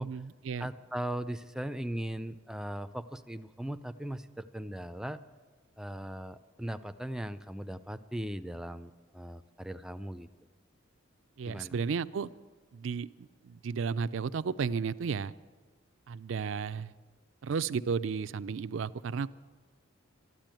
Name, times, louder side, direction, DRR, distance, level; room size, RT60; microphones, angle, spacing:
voice 1, 0.0-0.7 11.4-12.3 12.7-15.3 16.1-16.9 17.4-19.3, right 5 dB, 70° right, 14 dB, 0.4 m, -33 dB
voice 2, 0.6-5.2 5.8-10.3 11.5-11.7, right 1 dB, 5° right, 10 dB, 0.4 m, -38 dB
12.5 x 12.0 x 9.0 m, 1.5 s
head